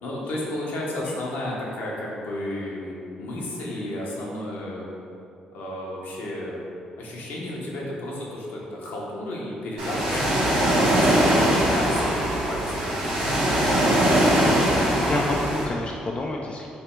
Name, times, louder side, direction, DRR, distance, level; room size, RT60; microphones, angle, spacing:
voice 1, 0.0-4.9 5.5-6.6 7.0-13.0, left 1 dB, 70° left, -4 dB, 0.9 m, -33 dB
Ocean, 9.8-15.6, right 1 dB, 75° right, 1.0 m, -21 dB
voice 2, 13.7-14.2 14.4-14.6 14.9-16.7, left 2 dB, 35° left, -1 dB, 0.4 m, -30 dB
3.4 x 2.8 x 4.3 m, 2.7 s
hypercardioid pair, 45°, 3 cm